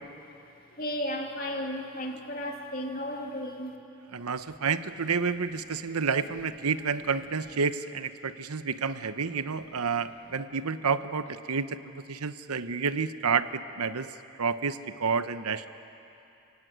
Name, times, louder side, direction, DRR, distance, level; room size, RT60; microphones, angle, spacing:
voice 1, 0.8-3.7, equal, 40° left, 1 dB, 2.6 m, -34 dB
voice 2, 4.1-14.1 14.4-15.7, right 5 dB, 85° right, 11 dB, 0.9 m, -30 dB
29.0 x 17.0 x 9.5 m, 2.8 s
head